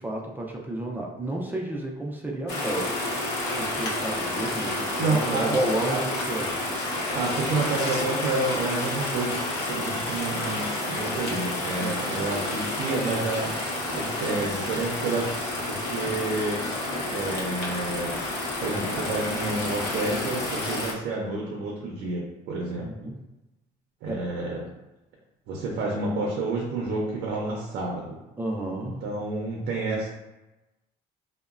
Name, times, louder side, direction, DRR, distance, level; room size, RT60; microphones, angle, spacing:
voice 1, 0.0-3.1 3.5-6.6 11.8-12.3 22.8-23.2 24.1-24.2 28.4-29.2, right 1 dB, 10° right, -2 dB, 0.3 m, -31 dB
sound 1, 2.5-20.9, left 2 dB, 80° left, 0.7 m, -30 dB
voice 2, 5.0-5.6 5.9-6.0 7.1-13.5 13.9-15.3 15.7-16.7 17.1-22.9 24.0-24.7 25.5-28.2 28.8-30.1, right 3 dB, 85° right, -2 dB, 0.5 m, -29 dB
2.9 x 2.1 x 2.4 m, 1.0 s
cardioid pair, 110°, 17 cm